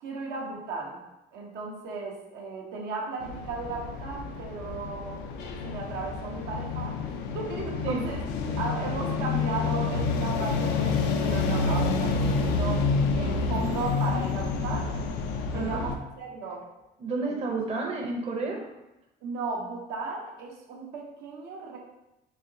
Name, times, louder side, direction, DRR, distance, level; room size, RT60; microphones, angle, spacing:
voice 1, 0.0-1.0 1.3-5.2 5.6-8.2 8.6-14.9 15.5-16.7 17.2-17.4 17.9-18.0 19.2-21.8, right 3 dB, 85° right, -1 dB, 0.8 m, -35 dB
sound 1, 3.2-16.0, left 4 dB, 90° left, 0.4 m, -28 dB
voice 2, 15.5-15.9 17.0-18.7, right 3 dB, 40° right, 0 dB, 0.7 m, -31 dB
4.2 x 2.8 x 2.6 m, 0.95 s
cardioid pair, 110°, 17 cm